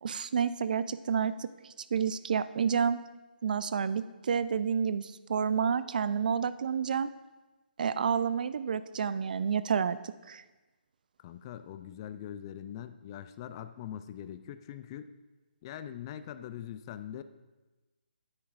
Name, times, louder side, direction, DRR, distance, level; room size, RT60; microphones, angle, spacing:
voice 1, 0.0-1.5 1.9-3.0 3.4-7.1 7.8-10.0 10.3-10.4, right 7 dB, 55° right, 15 dB, 0.4 m, -29 dB
voice 2, 11.2-15.1 15.6-17.2, left 10 dB, 25° left, 11 dB, 0.3 m, -42 dB
9.7 x 8.5 x 2.4 m, 1.2 s
figure-of-eight pair, 150°, 5 cm